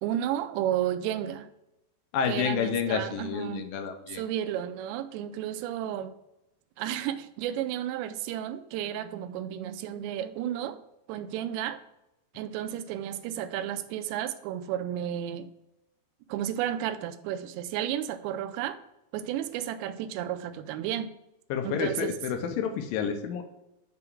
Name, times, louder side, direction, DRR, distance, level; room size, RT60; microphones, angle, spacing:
voice 1, 0.0-1.5 2.3-3.6 4.1-6.1 6.8-10.8 11.1-11.8 12.3-15.5 16.3-18.8 19.1-21.1 21.6-22.1, right 11 dB, 85° right, 2.8 m, -32 dB
voice 2, 2.1-4.2 21.5-23.4, left 7 dB, 85° left, 2.0 m, -29 dB
6.7 x 3.8 x 6.0 m
omnidirectional pair, 5.0 m